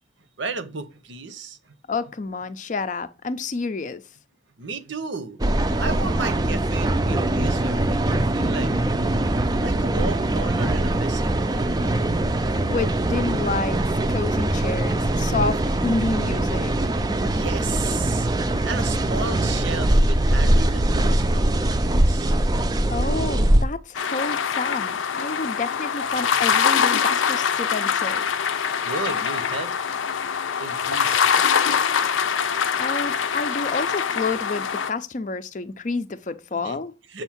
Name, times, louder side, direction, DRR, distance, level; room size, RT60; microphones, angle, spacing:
voice 1, 0.4-1.6 4.6-5.4 5.8-9.1 9.6-11.8 17.3-18.3 18.6-22.3 28.8-29.7 30.6-31.8 36.6-36.8 37.1-37.2, right 4 dB, 75° right, 0.9 m, -34 dB
voice 2, 1.9-4.0 12.5-13.8 14.1-16.9 22.9-28.2 32.8-36.9, left 3 dB, 40° left, 0.5 m, -29 dB
sound 1, 5.4-23.6, right 1 dB, 20° right, 0.4 m, -22 dB
sound 2, 23.9-34.9, left 7 dB, 90° left, 0.6 m, -23 dB
7.2 x 2.7 x 5.7 m
head